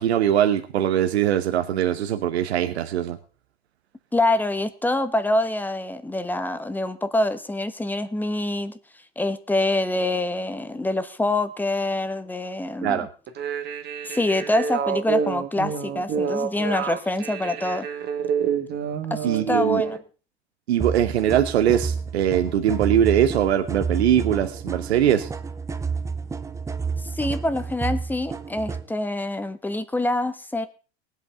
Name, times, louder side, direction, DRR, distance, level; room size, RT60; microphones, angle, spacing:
voice 1, 0.0-3.2 12.8-13.1 19.2-19.8 20.7-25.3, right 10 dB, 85° right, 8 dB, 1.1 m, -21 dB
voice 2, 4.1-8.7 9.2-13.1 14.0-17.9 19.1-20.0 27.1-30.7, left 1 dB, 5° left, 11 dB, 1.0 m, -25 dB
sound 1, 13.3-20.0, right 6 dB, 30° right, 1.5 m, -28 dB
sound 2, 20.8-28.9, right 5 dB, 10° right, 0.6 m, -30 dB
19.0 x 8.3 x 3.8 m, 0.36 s
hypercardioid pair, 115°, 32 cm